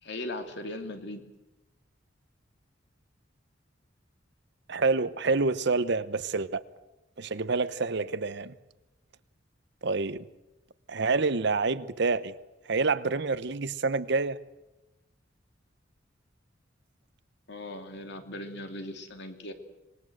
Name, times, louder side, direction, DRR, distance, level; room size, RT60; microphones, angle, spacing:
voice 1, 0.0-1.2 17.5-19.5, left 1 dB, 60° left, 2.8 m, -38 dB
voice 2, 4.7-6.6 7.2-8.5 9.8-10.3 10.9-12.3 12.7-14.4, right 3 dB, 60° right, 0.9 m, -27 dB
26.5 x 20.5 x 7.9 m
head